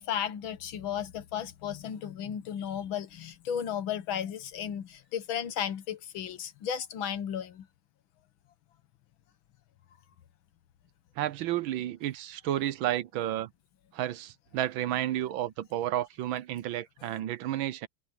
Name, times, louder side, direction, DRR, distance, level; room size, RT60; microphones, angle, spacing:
voice 1, 0.0-7.7, left 9 dB, 75° left, 1.8 m, -34 dB
voice 2, 11.2-13.5 13.9-17.9, right 12 dB, 75° right, 1.5 m, -31 dB
omnidirectional pair, 2.3 m